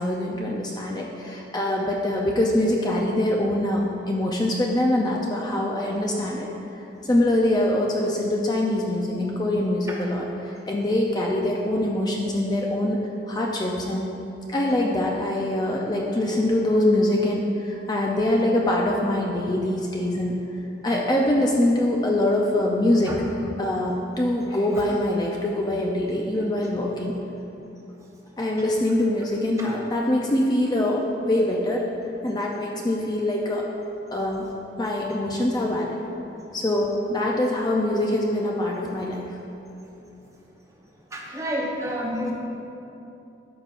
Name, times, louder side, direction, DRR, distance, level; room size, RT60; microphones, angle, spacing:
voice 1, 0.0-6.5 7.0-13.0 13.3-14.1 14.5-20.4 20.8-23.2 23.6-27.2 28.4-31.9 32.2-33.7 34.1-36.0 36.5-39.4, left 1 dB, 20° left, -1 dB, 0.4 m, -24 dB
voice 2, 41.1-42.3, equal, 15° right, -2 dB, 0.8 m, -29 dB
12.5 x 5.2 x 2.5 m, 2.9 s
head